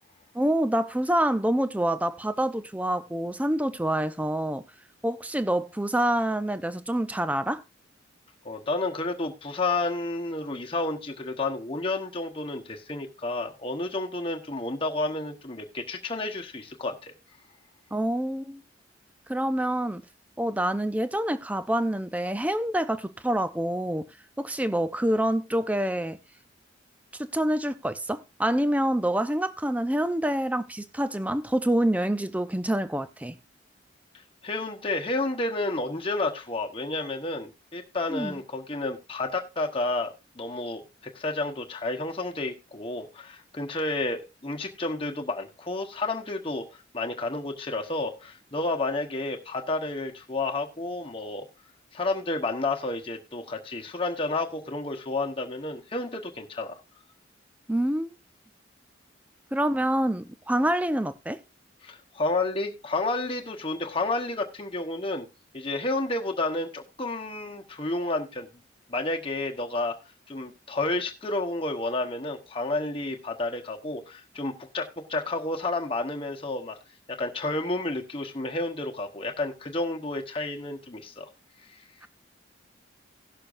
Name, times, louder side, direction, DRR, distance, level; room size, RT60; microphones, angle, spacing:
voice 1, 0.3-4.6 5.0-7.6 17.9-18.6 19.3-20.0 20.4-24.1 24.4-26.2 27.2-33.4 38.1-38.4 57.7-58.1 59.5-61.4, right 1 dB, 10° right, 0.5 m, -26 dB
voice 2, 8.4-17.1 34.4-46.6 46.9-51.4 51.9-56.8 61.8-65.3 65.5-68.5 68.9-69.9 70.3-76.8 77.1-81.3, left 2 dB, 30° left, 1.2 m, -31 dB
17.5 x 6.8 x 2.6 m
head